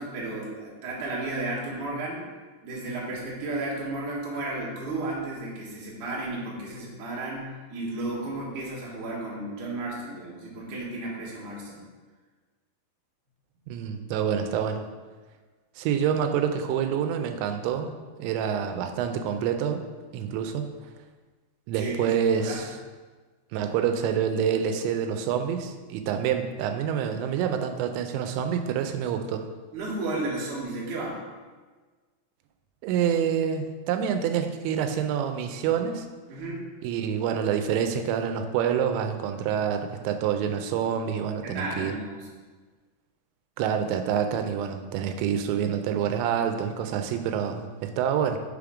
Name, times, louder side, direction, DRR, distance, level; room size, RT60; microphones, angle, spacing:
voice 1, 0.0-2.2 2.6-11.8 21.7-22.1 22.3-22.6 29.7-31.2 36.3-36.6 41.4-42.3, right 2 dB, 65° right, -4 dB, 2.0 m, -33 dB
voice 2, 13.7-14.8 15.8-19.8 20.1-20.7 21.7-22.7 23.5-29.5 32.8-36.1 36.8-42.0 43.6-48.4, right 8 dB, 90° right, 6 dB, 2.8 m, -27 dB
6.3 x 3.6 x 4.9 m, 1.4 s
omnidirectional pair, 5.1 m